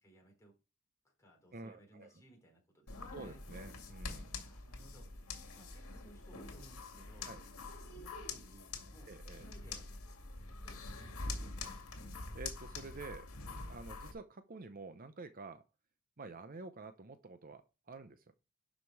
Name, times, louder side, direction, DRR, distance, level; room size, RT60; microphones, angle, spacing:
voice 1, 0.0-0.5 1.0-3.4 4.3-7.3 7.8-9.1 9.4-9.8 10.6-11.8, right 1 dB, 15° left, 0 dB, 3.4 m, -62 dB
voice 2, 1.5-2.1 3.1-4.3 7.2-7.4 9.1-9.5 12.3-13.3 13.7-15.6 16.2-18.3, right 3 dB, 40° right, 10 dB, 0.7 m, -49 dB
sound 1, 2.9-14.1, left 3 dB, 80° left, 2.2 m, -45 dB
11.5 x 5.2 x 4.7 m, 0.30 s
head